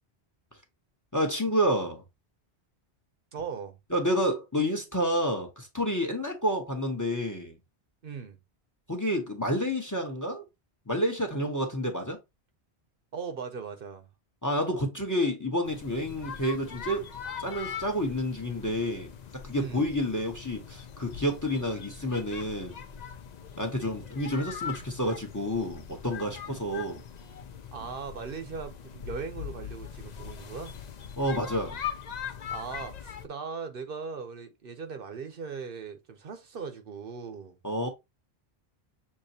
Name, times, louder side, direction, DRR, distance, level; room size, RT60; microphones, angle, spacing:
voice 1, 1.1-2.0 3.9-7.6 8.9-10.4 10.9-12.2 14.4-17.1 17.4-22.8 23.6-27.0 31.2-31.8 37.6-37.9, equal, 20° left, 0.9 m, -29 dB
voice 2, 3.3-3.8 8.0-8.4 13.1-14.1 19.6-19.8 27.7-30.7 32.5-37.6, right 5 dB, 60° right, 0.9 m, -39 dB
sound 1, 15.6-33.3, left 8 dB, 50° left, 0.5 m, -41 dB
6.5 x 3.0 x 2.7 m
omnidirectional pair, 1.1 m